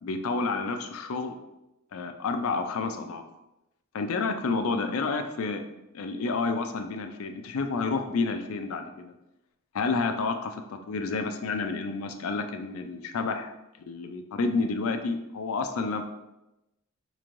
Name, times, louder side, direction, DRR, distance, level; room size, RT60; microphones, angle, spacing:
voice 1, 0.0-1.4 1.9-3.3 3.9-5.6 5.9-9.1 9.7-13.5 13.9-16.0, left 4 dB, 75° left, 7 dB, 0.4 m, -30 dB
4.3 x 3.1 x 2.5 m, 0.93 s
head